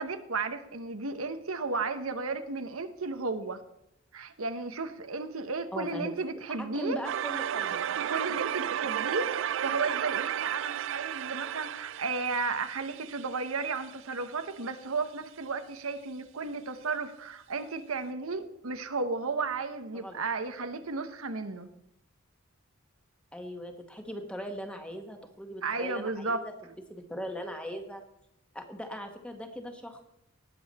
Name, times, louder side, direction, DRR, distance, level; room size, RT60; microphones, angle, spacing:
voice 1, 0.0-3.6 4.1-7.0 8.1-21.7 25.6-26.4, right 4 dB, 90° right, 8 dB, 1.1 m, -34 dB
voice 2, 5.7-6.1 6.6-7.8 19.9-20.2 23.3-28.0 28.5-30.0, equal, 5° left, 4 dB, 1.4 m, -39 dB
sound 1, 7.0-13.9, right 10 dB, 65° right, 0.3 m, -33 dB
19.0 x 7.1 x 4.3 m, 0.82 s
head